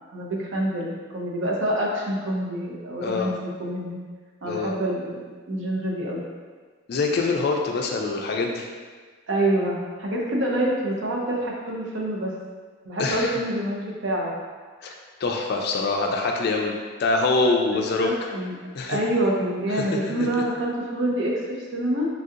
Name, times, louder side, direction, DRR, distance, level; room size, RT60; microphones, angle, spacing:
voice 1, 0.1-4.0 4.4-6.2 9.3-12.4 12.8-14.3 17.7-18.5 18.9-22.1, right 1 dB, 65° right, -2 dB, 0.6 m, -26 dB
voice 2, 3.0-3.3 4.5-4.7 6.9-8.7 13.0-13.3 14.8-14.9 15.2-16.7 17.0-18.1 18.7-19.0 19.7-20.0, left 3 dB, 55° left, 1 dB, 0.3 m, -24 dB
3.2 x 2.7 x 2.4 m, 1.5 s
head